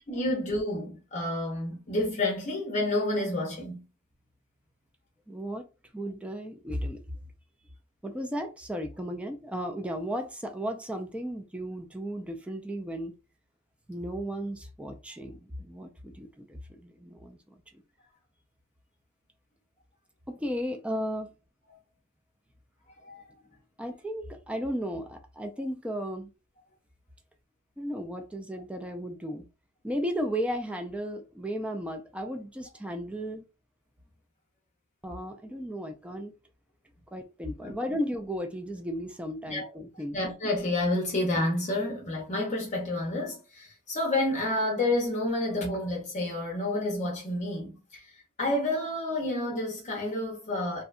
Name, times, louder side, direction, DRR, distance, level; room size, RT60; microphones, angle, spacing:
voice 1, 0.1-3.8 21.7-21.8 23.0-23.2 37.6-37.7 39.5-39.7 40.1-48.1 48.4-50.8, left 1 dB, 35° left, 0.6 m, -29 dB
voice 2, 5.3-5.7 5.9-7.0 8.0-13.1 13.9-17.4 20.3-21.3 23.8-26.3 27.8-29.4 29.8-33.4 35.0-36.3 37.1-40.2, equal, 5° right, 0.3 m, -35 dB
2.7 x 2.2 x 2.4 m
head